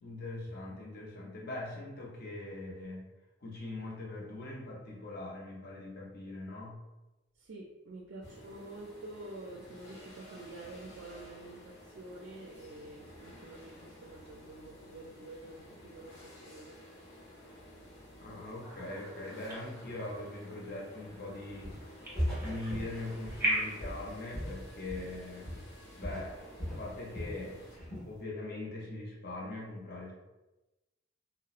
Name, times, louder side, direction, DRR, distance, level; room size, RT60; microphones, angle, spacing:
voice 1, 0.0-3.1 3.4-6.8 18.2-21.8 22.4-25.5 25.9-26.4 26.8-27.6 28.0-30.1, left 2 dB, 50° left, -3 dB, 0.6 m, -41 dB
voice 2, 7.4-16.8, right 2 dB, 60° right, -1 dB, 0.4 m, -48 dB
sound 1, 8.2-27.8, left 1 dB, 90° left, 0.9 m, -53 dB
sound 2, 18.6-23.9, right 1 dB, 15° right, 1.0 m, -39 dB
Walk footsteps, 21.6-21.9 22.1-25.2 25.4-25.8 26.0-27.4 27.7-28.1, equal, 10° left, 1.1 m, -38 dB
2.8 x 2.0 x 2.4 m, 1.0 s
head